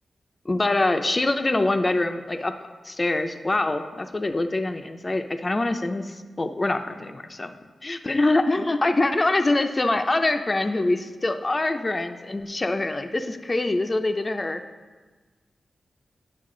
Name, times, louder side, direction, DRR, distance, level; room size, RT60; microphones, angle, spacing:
voice 1, 0.5-2.5 2.8-7.5 7.8-14.6, left 2 dB, 35° left, 7 dB, 0.5 m, -24 dB
9.5 x 5.8 x 3.8 m, 1.4 s
cardioid pair, 50°, 0 cm